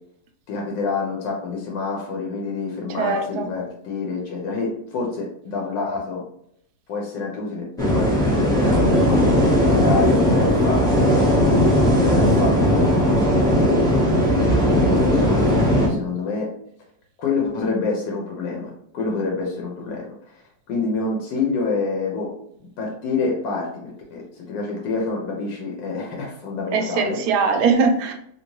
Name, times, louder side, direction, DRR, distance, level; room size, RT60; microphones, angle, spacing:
voice 1, 0.5-6.2 6.9-11.3 12.0-16.5 17.2-20.4 20.7-22.3 22.6-27.2, left 4 dB, 85° left, -1 dB, 1.4 m, -28 dB
voice 2, 3.0-3.5 26.7-28.1, right 4 dB, 70° right, 5 dB, 1.0 m, -21 dB
sound 1, 7.8-15.9, equal, 5° left, 0.5 m, -18 dB
2.9 x 2.8 x 3.0 m, 0.71 s
omnidirectional pair, 2.0 m